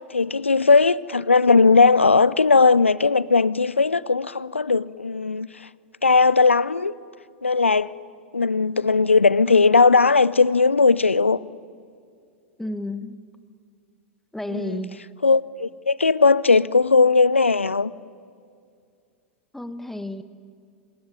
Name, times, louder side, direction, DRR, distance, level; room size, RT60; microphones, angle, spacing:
voice 1, 0.1-5.5 6.0-6.9 7.4-7.9 8.3-11.4 14.5-14.8 15.2-17.9, left 4 dB, 85° left, 0.6 m, -18 dB
voice 2, 12.6-13.2 14.3-15.0 19.5-20.2, left 1 dB, 5° left, 1.4 m, -31 dB
26.0 x 21.0 x 9.5 m
figure-of-eight pair, 95°, 7 cm